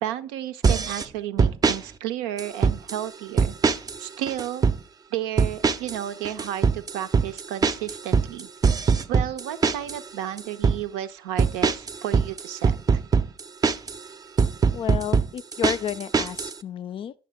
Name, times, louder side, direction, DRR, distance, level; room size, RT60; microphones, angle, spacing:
voice 1, 0.0-3.5 4.0-4.6 5.1-8.5 9.1-12.7, right 11 dB, 75° right, 0.5 m, -32 dB
sound 1, 0.6-1.1 1.4-1.8 2.4-3.0 3.4-4.0 4.3-4.8 5.4-6.0 6.2-10.0 10.4-10.8 11.4-14.0 14.4-16.5, right 5 dB, 30° right, 0.6 m, -22 dB
voice 2, 14.7-17.1, left 10 dB, 45° left, 0.4 m, -31 dB
8.7 x 6.3 x 3.4 m
hypercardioid pair, 55°, 13 cm